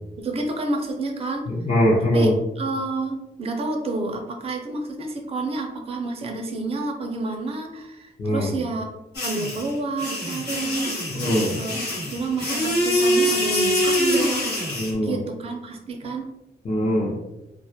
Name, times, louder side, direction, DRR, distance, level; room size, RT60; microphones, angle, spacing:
voice 1, 0.2-1.5 2.1-2.3 2.6-8.9 9.2-10.9 11.6-11.8 12.1-14.4 15.0-16.3, right 3 dB, 35° right, 2 dB, 0.4 m, -29 dB
voice 2, 1.5-2.3 8.2-8.5 11.1-11.5 14.7-15.2 16.6-17.1, equal, 40° left, -6 dB, 0.5 m, -21 dB
sound 1, 9.1-14.9, equal, 85° left, 1.0 m, -24 dB
2.2 x 2.0 x 2.7 m, 0.91 s
wide cardioid pair, 165°, 17 cm